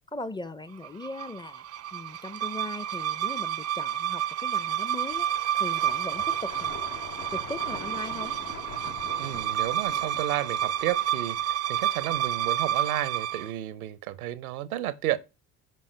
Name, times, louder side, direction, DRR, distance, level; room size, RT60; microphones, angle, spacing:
voice 1, 0.1-1.6 1.9-5.3 5.6-6.8 7.3-8.3, left 2 dB, 10° left, 0.7 m, -39 dB
sound 1, 0.8-13.5, right 11 dB, 35° right, 0.6 m, -30 dB
sound 2, 5.1-13.4, left 3 dB, 80° left, 2.7 m, -43 dB
voice 2, 9.2-15.2, right 14 dB, 70° right, 0.9 m, -32 dB
13.5 x 5.6 x 3.3 m
figure-of-eight pair, 50°, 45 cm